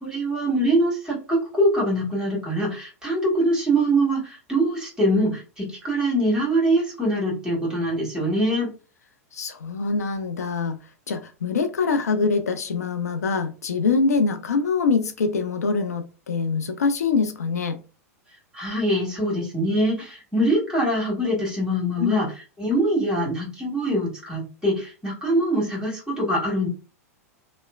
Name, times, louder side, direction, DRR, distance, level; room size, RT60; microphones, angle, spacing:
voice 1, 0.0-8.7 18.5-22.3 22.6-26.7, right 1 dB, 10° right, 1.5 m, -23 dB
voice 2, 9.3-10.8 11.1-17.8 22.0-22.2, left 4 dB, 90° left, 0.4 m, -24 dB
3.0 x 2.0 x 2.3 m
hypercardioid pair, 105°, 8 cm